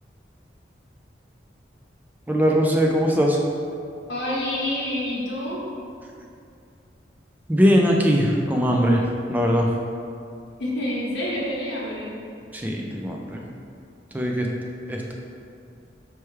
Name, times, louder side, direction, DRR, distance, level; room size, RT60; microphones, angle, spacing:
voice 1, 2.3-3.4 7.5-9.0 9.3-9.7 12.5-13.4 14.1-14.5 14.9-15.1, equal, 10° right, 0 dB, 0.3 m, -20 dB
voice 2, 4.1-5.6 10.6-12.1, left 1 dB, 80° left, -7 dB, 1.0 m, -27 dB
4.5 x 3.4 x 3.1 m, 2.4 s
head